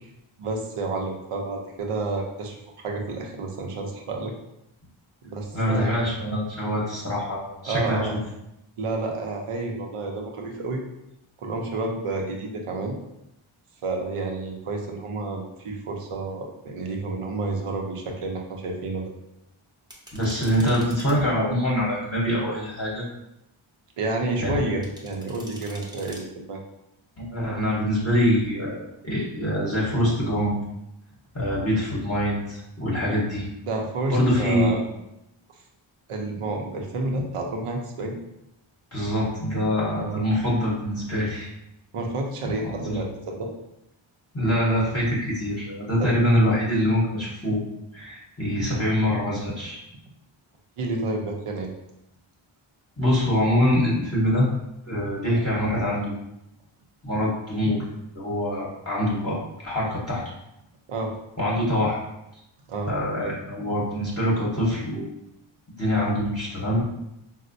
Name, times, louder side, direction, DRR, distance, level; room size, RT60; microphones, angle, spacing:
voice 1, 0.4-4.3 5.2-6.0 7.6-8.2 8.8-10.8 11.4-12.9 13.8-19.1 24.0-26.6 33.7-34.8 36.1-38.2 40.0-40.2 41.9-43.5 46.0-46.2 50.8-51.7 60.9-61.1 62.7-62.9, right 2 dB, 90° right, 2 dB, 0.6 m, -30 dB
voice 2, 5.5-8.1 20.1-23.1 24.4-24.6 27.2-30.5 31.3-33.5 34.1-34.8 38.9-41.5 42.4-43.0 44.3-47.6 47.9-49.8 53.0-54.5 54.9-56.1 57.0-57.8 58.1-60.2 61.4-62.0 62.9-65.1 65.8-66.9, equal, 30° left, -7 dB, 0.8 m, -24 dB
sound 1, 19.9-21.2 24.8-26.2, equal, 10° right, 0.6 m, -45 dB
4.1 x 2.1 x 2.5 m, 0.84 s
wide cardioid pair, 90°, 50 cm